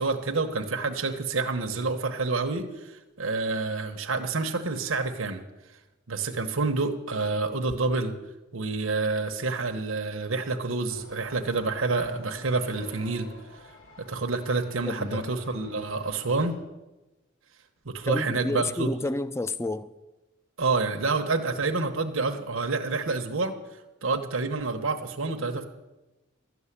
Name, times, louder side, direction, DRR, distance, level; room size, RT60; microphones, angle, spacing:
voice 1, 0.0-5.4 6.1-8.1 8.5-13.3 14.0-16.6 17.8-18.9 20.6-23.5 24.0-25.6, right 3 dB, 80° right, 1.0 m, -28 dB
sound 1, 10.9-16.6, left 1 dB, 90° left, 4.8 m, -48 dB
voice 2, 14.9-15.2 18.1-19.9, left 2 dB, 15° left, 0.4 m, -30 dB
13.0 x 7.1 x 9.9 m
head